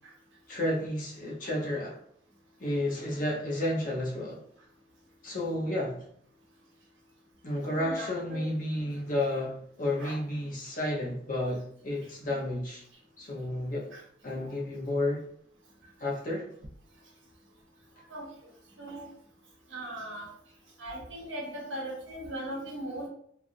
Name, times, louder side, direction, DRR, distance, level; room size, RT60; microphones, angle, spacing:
voice 1, 0.5-2.0 2.6-4.4 5.2-6.0 7.4-12.8 13.2-13.9 14.2-15.2 16.0-16.5, left 1 dB, 45° left, -3 dB, 0.7 m, -31 dB
voice 2, 7.7-8.5 10.0-10.2 13.9-14.0 14.4-14.6 18.1-18.3 18.8-19.1 19.7-20.3 20.8-23.1, right 1 dB, 80° right, -1 dB, 0.9 m, -39 dB
3.2 x 2.4 x 2.6 m, 0.65 s
head